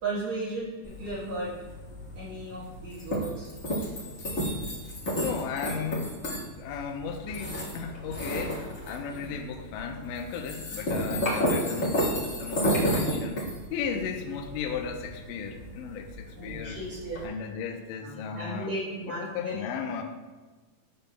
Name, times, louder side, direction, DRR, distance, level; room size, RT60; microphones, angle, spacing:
voice 1, 0.0-1.5 2.2-3.5 5.2-5.3 16.4-17.2 18.0-19.5, right 2 dB, 55° right, -8 dB, 2.3 m, -35 dB
sound 1, 0.8-17.3, equal, 55° left, 0.8 m, -32 dB
voice 2, 5.2-6.1 6.6-12.1 12.4-16.8 17.2-18.7 19.1-20.0, left 6 dB, 80° left, 3 dB, 2.1 m, -35 dB
12.0 x 6.7 x 2.3 m, 1.3 s
omnidirectional pair, 4.5 m